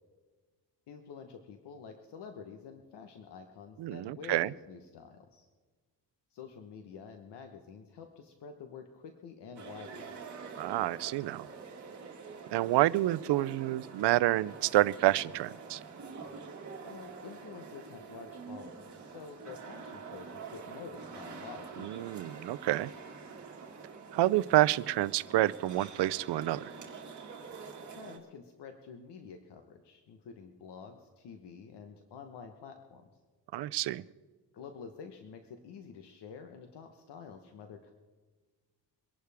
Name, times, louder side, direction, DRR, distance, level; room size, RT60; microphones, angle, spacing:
voice 1, 0.9-5.5 6.3-10.1 16.8-22.1 27.9-33.1 34.5-37.9, left 6 dB, 80° left, 5 dB, 1.2 m, -48 dB
voice 2, 3.8-4.5 10.6-11.5 12.5-15.8 21.8-22.9 24.1-26.7 33.5-34.0, right 15 dB, 80° right, 18 dB, 0.5 m, -28 dB
sound 1, 9.5-28.2, right 5 dB, 45° right, 2.2 m, -46 dB
24.0 x 11.5 x 3.5 m, 1.3 s
cardioid pair, 125°, 41 cm